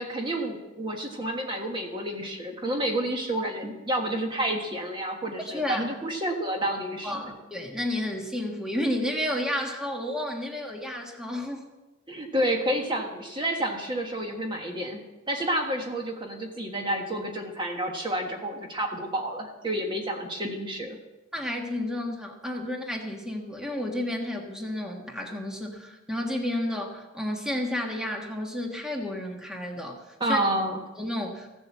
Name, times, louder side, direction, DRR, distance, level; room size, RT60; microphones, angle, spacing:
voice 1, 0.0-7.3 12.1-21.0 30.2-30.8, right 1 dB, 25° right, 2 dB, 1.4 m, -30 dB
voice 2, 5.5-5.9 7.0-11.6 21.3-30.4 31.0-31.6, left 1 dB, 5° right, 1 dB, 1.5 m, -31 dB
15.5 x 7.8 x 7.3 m, 1.1 s
head